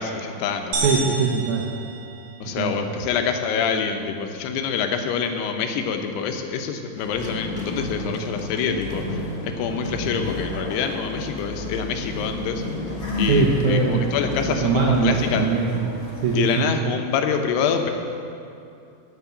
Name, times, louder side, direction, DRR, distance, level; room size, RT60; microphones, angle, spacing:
voice 1, 0.0-0.9 2.4-12.6 13.2-15.6 16.3-17.9, left 6 dB, 90° left, 5 dB, 2.9 m, -26 dB
sound 1, 0.7-2.7, right 3 dB, 55° right, 2.8 m, -30 dB
voice 2, 0.8-1.7 2.5-2.8 13.3-14.1 14.4-15.9 16.2-16.7, right 5 dB, 75° right, -3 dB, 1.8 m, -21 dB
sound 2, 7.0-16.4, left 2 dB, 15° left, 1.7 m, -32 dB
sound 3, 8.9-16.5, left 2 dB, 35° left, 2.4 m, -36 dB
12.0 x 5.3 x 8.2 m, 2.6 s
omnidirectional pair, 4.6 m